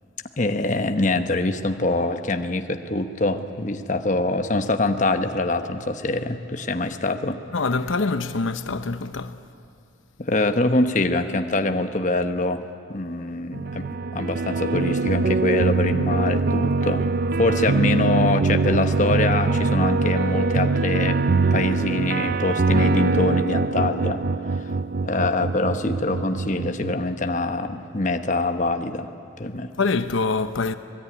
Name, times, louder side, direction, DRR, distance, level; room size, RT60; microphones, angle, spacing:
voice 1, 0.4-7.4 10.2-12.6 12.9-17.1 17.4-21.2 21.5-24.2 24.6-24.7 25.0-29.1 29.4-29.7, left 2 dB, 40° left, 1.0 m, -24 dB
voice 2, 7.5-9.3 29.8-30.8, left 3 dB, 75° left, 0.8 m, -24 dB
sound 1, 13.5-26.9, right 3 dB, 50° right, 0.5 m, -23 dB
25.0 x 20.0 x 9.8 m
head